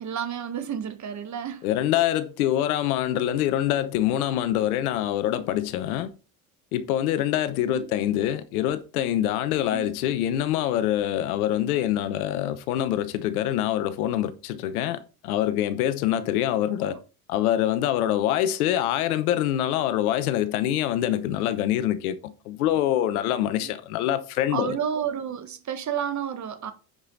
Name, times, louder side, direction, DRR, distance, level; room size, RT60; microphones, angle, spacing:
voice 1, 0.0-1.7 7.7-7.9 9.7-9.9 16.8-17.0 23.6-23.7 24.5-26.7, right 8 dB, 40° right, 1.5 m, -31 dB
voice 2, 1.6-6.1 6.7-17.0 17.3-24.8, left 12 dB, 85° left, 1.0 m, -25 dB
8.8 x 5.1 x 4.0 m
hypercardioid pair, 75°, 43 cm